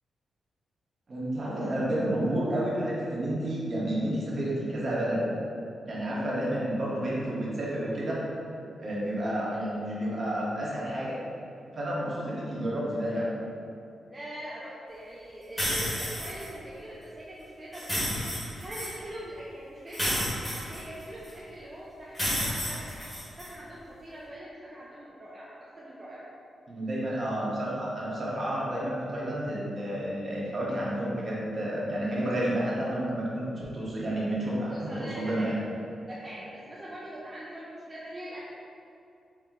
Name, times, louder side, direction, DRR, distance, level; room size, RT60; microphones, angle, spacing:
voice 1, 1.1-5.2 5.9-8.3 8.8-11.2 11.7-13.3 26.7-35.6, right 1 dB, 35° right, -6 dB, 0.8 m, -30 dB
voice 2, 14.1-18.0 18.6-20.3 20.7-23.0 23.4-25.5 25.8-26.3 34.7-35.6 36.1-38.4, right 1 dB, 20° right, -7 dB, 0.4 m, -42 dB
sound 1, 15.6-16.5 17.7-18.9 19.9-21.3 22.1-23.5, equal, 15° left, 1.1 m, -31 dB
4.4 x 2.1 x 3.6 m, 2.6 s
wide cardioid pair, 165°, 0 cm